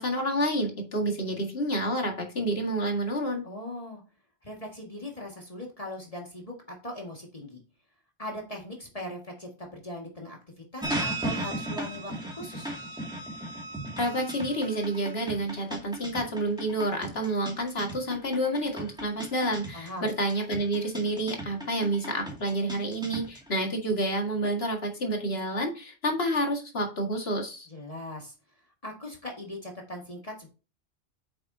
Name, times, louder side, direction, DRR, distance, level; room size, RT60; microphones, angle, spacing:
voice 1, 0.0-3.4 14.0-27.7, right 1 dB, 70° left, 2 dB, 2.2 m, -29 dB
voice 2, 3.4-4.0 4.4-6.5 6.8-7.6 8.2-12.7 19.7-20.1 27.7-28.3 28.8-30.5, left 1 dB, 35° left, -1 dB, 2.0 m, -40 dB
sound 1, 10.8-23.5, right 1 dB, 5° right, 2.3 m, -36 dB
9.1 x 6.7 x 2.8 m, 0.33 s
omnidirectional pair, 1.1 m